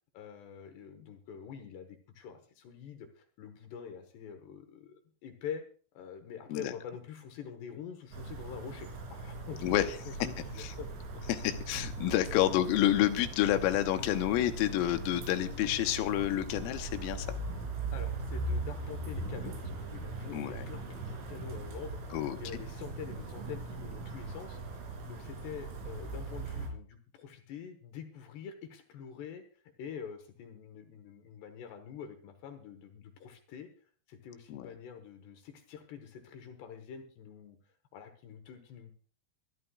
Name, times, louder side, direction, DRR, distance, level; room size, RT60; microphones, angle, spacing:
voice 1, 0.1-5.6 5.9-11.2 17.9-22.0 22.4-24.8 25.1-29.4 29.8-33.7 34.1-37.6 37.9-38.9, left 7 dB, 70° left, 7 dB, 2.9 m, -46 dB
sound 1, 8.1-26.7, right 2 dB, 70° right, 5.5 m, -40 dB
voice 2, 11.3-17.3 20.3-20.7 22.1-22.4 34.5-34.7, left 13 dB, 85° left, 8 dB, 3.6 m, -29 dB
24.0 x 13.0 x 2.4 m, 0.42 s
omnidirectional pair, 5.9 m